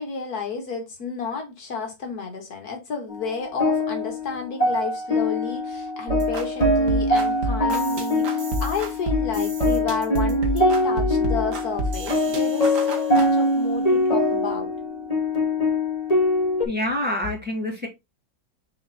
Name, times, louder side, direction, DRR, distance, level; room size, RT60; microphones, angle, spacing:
voice 1, 0.0-14.7, left 4 dB, 65° left, 1.9 m, -31 dB
sound 1, 3.1-16.6, left 1 dB, 25° left, 1.8 m, -23 dB
sound 2, 6.1-13.3, right 1 dB, 90° right, 2.3 m, -29 dB
voice 2, 16.6-17.9, left 1 dB, 5° right, 2.7 m, -26 dB
6.6 x 4.2 x 4.1 m
omnidirectional pair, 1.7 m